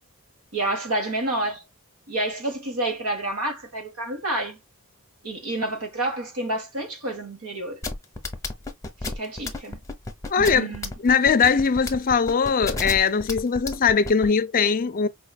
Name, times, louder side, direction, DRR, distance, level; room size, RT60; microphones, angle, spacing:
voice 1, 0.5-1.6 2.1-4.6 5.2-7.8 9.0-9.8 10.4-10.9, right 1 dB, 75° right, 1.4 m, -29 dB
sound 1, 7.8-14.3, left 3 dB, 15° left, 0.7 m, -31 dB
voice 2, 10.3-10.7 11.0-15.1, left 5 dB, 40° left, 0.5 m, -20 dB
4.7 x 3.2 x 2.3 m
head